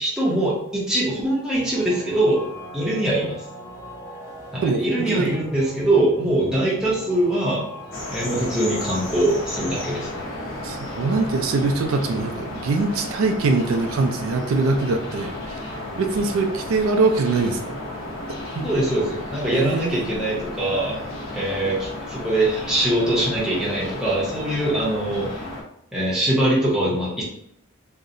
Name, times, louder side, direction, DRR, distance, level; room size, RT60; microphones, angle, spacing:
voice 1, 0.0-2.4 2.7-3.4 4.5-7.7 8.1-10.2 18.6-21.0 21.3-25.3 25.9-27.2, right 1 dB, 5° right, -7 dB, 0.6 m, -22 dB
sound 1, 1.5-12.2, right 2 dB, 55° left, 1.0 m, -39 dB
voice 2, 4.6-5.3 10.6-15.6 16.0-17.7 18.6-18.7 19.5-20.2, right 3 dB, 80° right, 5 dB, 0.3 m, -23 dB
sound 2, 7.9-25.6, left 1 dB, 75° left, 0.7 m, -33 dB
2.7 x 2.0 x 2.5 m, 0.73 s
head